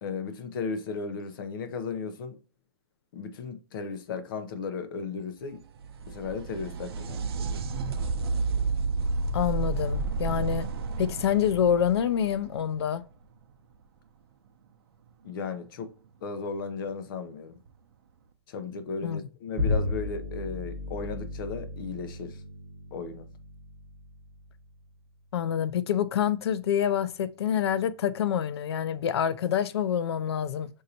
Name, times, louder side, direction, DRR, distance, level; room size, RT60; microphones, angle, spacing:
voice 1, 0.0-2.4 3.1-5.6 6.1-7.6 15.2-15.9 16.2-17.6 18.5-22.4 22.9-23.3, left 5 dB, 55° left, 0.8 m, -35 dB
sound 1, 5.5-13.1 16.5-16.6 17.7-17.8, right 4 dB, 70° right, 0.6 m, -31 dB
voice 2, 9.3-10.7 11.0-13.0 19.0-19.2 25.3-30.7, left 9 dB, 85° left, 0.5 m, -27 dB
Bowed string instrument, 19.6-25.2, left 2 dB, ahead, 1.6 m, -34 dB
6.2 x 2.7 x 2.8 m
supercardioid pair, 165°, 13 cm